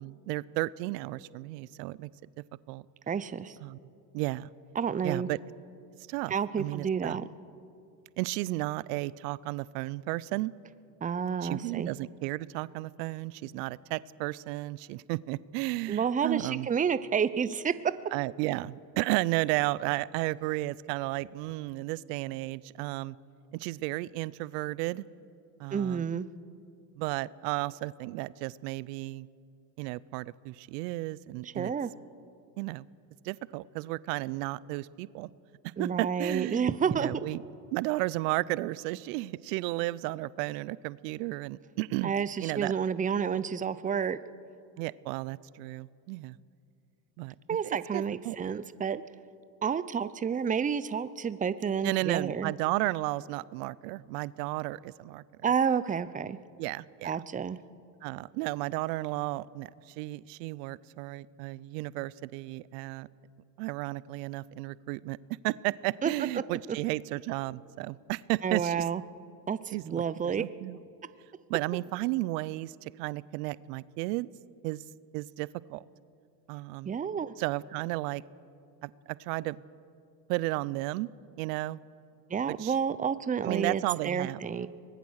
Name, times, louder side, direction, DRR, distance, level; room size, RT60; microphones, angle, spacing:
voice 1, 0.0-2.1 2.7-2.8 3.6-3.8 4.1-4.5 5.0-5.4 6.1-7.2 8.2-10.5 11.4-16.7 18.1-23.2 23.5-25.0 25.6-26.0 27.0-29.3 29.8-31.7 32.6-32.9 33.2-35.3 35.6-37.4 37.7-42.1 42.4-42.7 44.8-46.4 47.2-47.3 47.6-48.4 51.8-55.2 56.6-57.2 58.0-63.1 63.6-65.2 65.4-68.9 69.7-70.8 71.5-74.3 74.6-74.8 75.1-75.8 76.5-76.9 77.4-78.2 78.8-79.6 80.3-81.1 81.4-81.8 82.5-82.7 83.4-84.4, right 19 dB, 70° right, 20 dB, 0.7 m, -33 dB
voice 2, 3.1-3.6 4.7-5.3 6.3-7.2 11.0-11.9 15.9-17.7 25.7-26.3 31.6-31.9 35.8-37.3 42.0-44.2 47.5-49.0 49.6-52.5 55.4-56.4 57.0-57.6 66.0-66.1 66.7-66.8 68.4-69.0 69.5-70.4 76.8-77.3 82.3-84.7, right 7 dB, 15° right, 15 dB, 0.7 m, -30 dB
23.5 x 19.5 x 6.4 m, 2.4 s
supercardioid pair, 90°, 50 cm